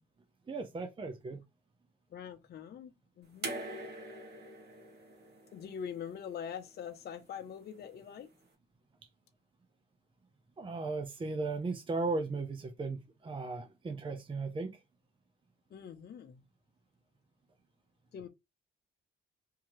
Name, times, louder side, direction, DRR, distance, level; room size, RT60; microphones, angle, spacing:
voice 1, 0.5-1.4 10.6-14.8, right 3 dB, 25° right, 0.7 m, -36 dB
voice 2, 2.1-3.6 5.5-8.3 15.7-16.4 18.1-18.3, left 8 dB, 55° left, 0.7 m, -44 dB
sound 1, 3.4-6.6 7.8-7.9, right 2 dB, 55° right, 1.7 m, -43 dB
3.8 x 2.8 x 3.0 m
cardioid pair, 90°, 20 cm